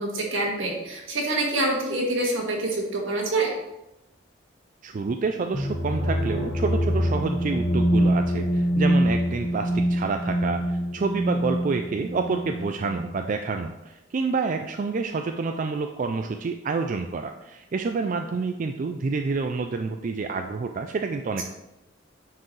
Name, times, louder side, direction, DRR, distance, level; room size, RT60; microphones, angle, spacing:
voice 1, 0.0-3.5, right 2 dB, 80° right, -1 dB, 1.9 m, -26 dB
voice 2, 4.8-21.4, right 4 dB, 40° right, 5 dB, 0.4 m, -28 dB
sound 1, 5.5-13.2, equal, 15° left, 1.3 m, -25 dB
9.5 x 4.7 x 3.2 m, 0.93 s
head